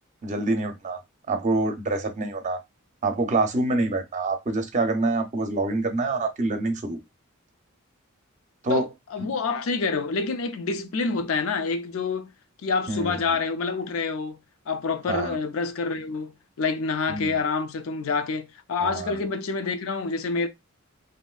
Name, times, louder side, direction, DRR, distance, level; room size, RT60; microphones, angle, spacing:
voice 1, 0.2-1.0 1.3-2.6 3.0-7.0 8.6-8.9 12.9-13.2 15.1-15.4 17.1-17.4 18.8-19.1, right 2 dB, 35° right, 0.5 m, -26 dB
voice 2, 8.7-12.3 12.6-14.4 14.7-20.5, left 4 dB, 75° left, 0.4 m, -27 dB
3.1 x 2.6 x 2.3 m
head